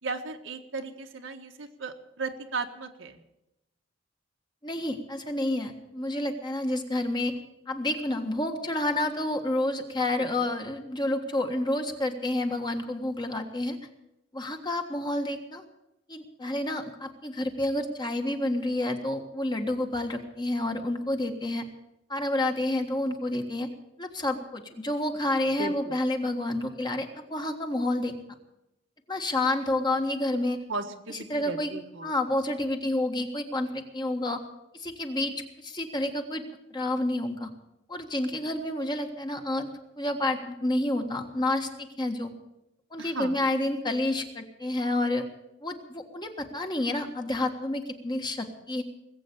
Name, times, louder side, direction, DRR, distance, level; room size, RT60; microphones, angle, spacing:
voice 1, 0.0-3.2 10.2-10.5 25.6-25.9 30.7-32.1 43.0-43.4, right 3 dB, 75° right, 4 dB, 1.6 m, -36 dB
voice 2, 4.6-7.3 7.7-13.8 14.3-15.6 16.1-21.6 22.1-23.7 24.0-28.1 29.1-30.6 31.1-31.7 32.0-34.4 34.7-36.4 36.7-37.5 37.9-39.7 40.0-42.3 42.9-45.2 45.6-48.8, left 1 dB, 25° left, 4 dB, 1.6 m, -29 dB
20.0 x 8.4 x 8.4 m, 0.87 s
head